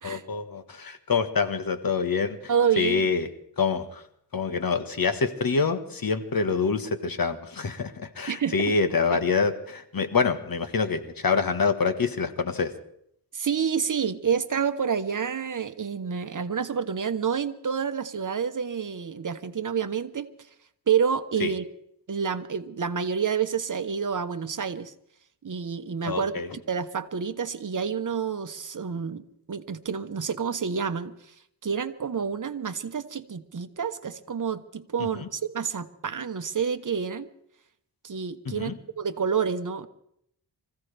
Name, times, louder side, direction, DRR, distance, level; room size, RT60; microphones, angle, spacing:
voice 1, 0.0-2.5 2.8-3.3 3.6-4.0 4.3-12.7 21.4-21.5 26.0-26.5 35.1-35.3 38.4-38.8, left 5 dB, 55° left, 9 dB, 1.5 m, -26 dB
voice 2, 2.5-3.0 8.3-8.7 9.1-9.2 13.3-20.3 20.9-21.6 22.1-24.9 25.4-31.3 31.6-37.3 38.0-39.9, right 6 dB, 45° right, 10 dB, 1.1 m, -28 dB
25.5 x 15.5 x 3.4 m, 0.72 s
cardioid pair, 70°, 42 cm